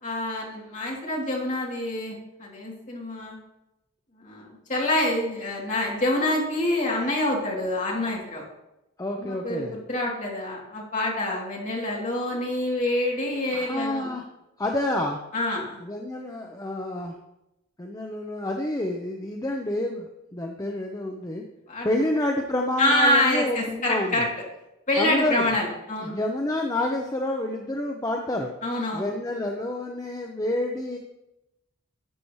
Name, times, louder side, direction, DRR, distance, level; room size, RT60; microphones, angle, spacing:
voice 1, 0.0-3.4 4.2-8.4 9.2-14.1 15.3-15.8 21.7-21.9 22.8-24.3 24.9-26.1 28.6-29.1, left 1 dB, 35° left, -3 dB, 2.9 m, -26 dB
voice 2, 9.0-9.8 13.5-14.2 14.6-15.2 15.8-17.1 17.8-20.1 20.3-21.4 21.8-24.3 25.0-25.5 26.0-28.5 28.9-31.0, left 1 dB, 15° left, 2 dB, 0.7 m, -28 dB
11.5 x 8.3 x 3.2 m, 0.91 s
head